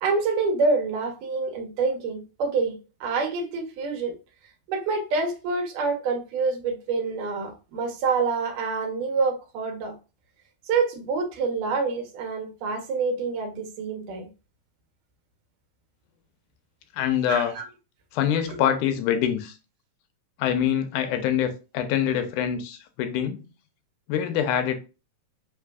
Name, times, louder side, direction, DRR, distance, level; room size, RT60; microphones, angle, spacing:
voice 1, 0.0-4.1 4.7-10.0 10.7-14.3 17.3-17.7 18.5-18.6, right 4 dB, 90° right, 2.7 m, -27 dB
voice 2, 16.9-17.5 18.1-19.6 20.4-23.4 24.1-24.8, left 9 dB, 85° left, 2.2 m, -25 dB
5.6 x 3.3 x 2.3 m
omnidirectional pair, 3.6 m